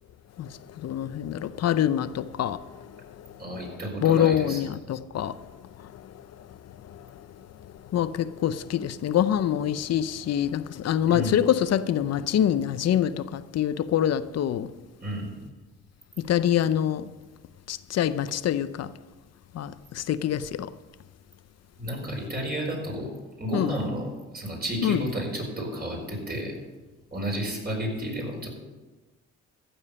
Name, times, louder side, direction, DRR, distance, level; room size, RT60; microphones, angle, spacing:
voice 1, 0.4-2.6 4.0-5.4 6.9-7.0 7.9-14.7 16.2-17.1 17.7-18.9 19.5-20.7 23.5-23.8 24.8-25.1, left 10 dB, 55° left, 0.6 m, -25 dB
voice 2, 3.4-4.6 11.1-11.4 15.0-15.3 21.8-23.1 23.4-26.5 27.1-28.5, equal, 30° right, 4.7 m, -31 dB
15.0 x 7.2 x 5.5 m
cardioid pair, 90°, 30 cm